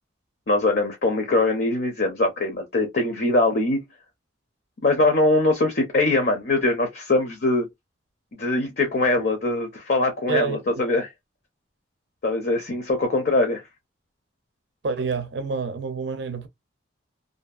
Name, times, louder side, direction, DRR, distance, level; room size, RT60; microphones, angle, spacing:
voice 1, 0.5-3.8 4.8-7.7 8.3-11.1 12.2-13.6, left 2 dB, 50° left, 0.6 m, -22 dB
voice 2, 14.8-16.5, right 4 dB, 60° right, 0.5 m, -27 dB
2.7 x 2.4 x 2.4 m
head